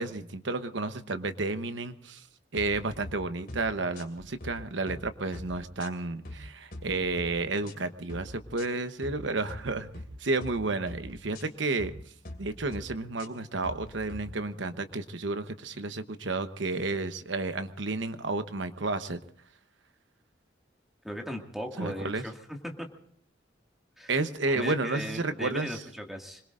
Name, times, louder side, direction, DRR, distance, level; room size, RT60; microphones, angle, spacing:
voice 1, 0.0-2.3 2.5-9.9 10.2-11.9 12.4-19.2 21.8-22.2 24.1-25.8, right 3 dB, 80° right, 10 dB, 1.0 m, -31 dB
sound 1, 2.6-3.1 3.5-3.7 3.9-4.5 4.9-5.1 5.3-6.4 6.7-7.3 7.6-7.8 8.1-8.7 9.0-9.2 9.5-10.1 10.4-10.6 10.9-11.4 11.8-12.0 12.2-12.8 13.2-14.2, left 1 dB, 55° left, 2.6 m, -43 dB
voice 2, 21.0-22.3 22.6-22.9 24.0-24.1 24.5-26.4, equal, ahead, 2 dB, 2.1 m, -37 dB
26.0 x 21.5 x 2.6 m, 0.65 s
head